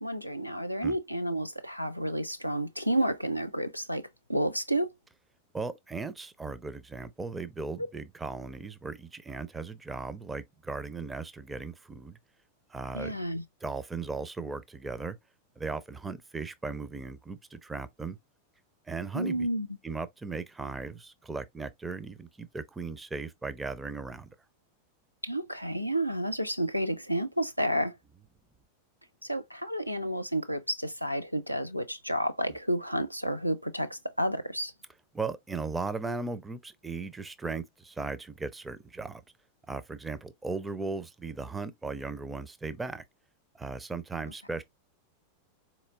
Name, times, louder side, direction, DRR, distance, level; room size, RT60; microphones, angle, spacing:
voice 1, 0.0-4.9 12.9-13.4 19.1-19.7 25.2-28.0 29.2-34.7, right 1 dB, 90° right, 0.3 m, -30 dB
voice 2, 5.5-12.2 12.7-13.2 13.6-15.2 15.6-18.2 18.9-19.5 19.8-24.3 35.1-39.2 39.7-43.0 43.5-44.6, right 4 dB, 10° right, 0.4 m, -37 dB
4.1 x 3.0 x 2.3 m
figure-of-eight pair, 90°, 0 cm